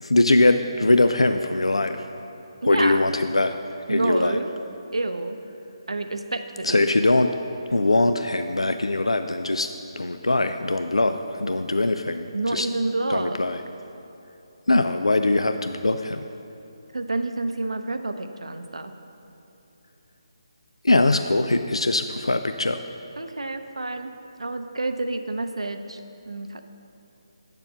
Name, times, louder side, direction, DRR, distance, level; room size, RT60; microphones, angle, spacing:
voice 1, 0.0-2.1 2.6-3.5 3.9-4.4 6.6-7.3 7.7-9.7 10.0-12.7 13.1-13.6 14.7-16.2 20.8-22.8, left 2 dB, 90° left, 8 dB, 0.4 m, -21 dB
voice 2, 2.6-3.0 3.9-4.5 4.9-5.4 5.9-7.0 12.3-13.4 16.9-18.9 23.2-24.1 24.4-26.6, right 2 dB, 80° right, 8 dB, 0.7 m, -28 dB
9.0 x 6.9 x 5.6 m, 3.0 s
figure-of-eight pair, 150°, 3 cm